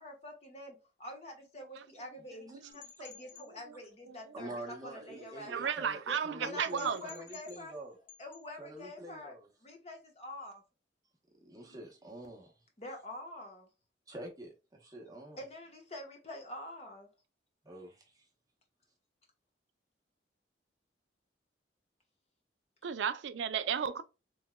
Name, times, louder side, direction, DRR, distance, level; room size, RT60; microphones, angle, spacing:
voice 1, 0.0-5.7 6.1-7.7 8.2-9.3 9.6-10.6 11.6-11.8 12.8-13.7 15.4-17.1, left 1 dB, 35° left, 1.1 m, -46 dB
sound 1, 2.7-3.5 6.6-7.8 8.1-8.4, left 8 dB, 80° left, 1.1 m, -53 dB
voice 2, 4.3-8.0 8.6-9.5 11.4-12.5 14.1-15.4 17.6-18.2, right 1 dB, 20° right, 1.0 m, -46 dB
voice 3, 5.5-7.0 22.8-24.0, right 7 dB, 75° right, 0.4 m, -33 dB
3.5 x 3.2 x 2.2 m
head